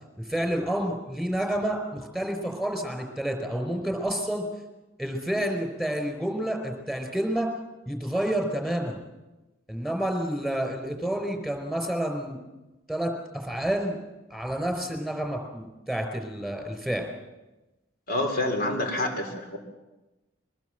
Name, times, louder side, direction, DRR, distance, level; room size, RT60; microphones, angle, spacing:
voice 1, 0.2-4.5 5.0-7.5 7.9-9.0 9.7-12.4 12.9-14.0 14.3-17.1, right 1 dB, ahead, 4 dB, 4.7 m, -29 dB
voice 2, 18.1-19.6, left 1 dB, 55° left, 4 dB, 4.3 m, -27 dB
23.5 x 20.0 x 7.9 m, 1.1 s
head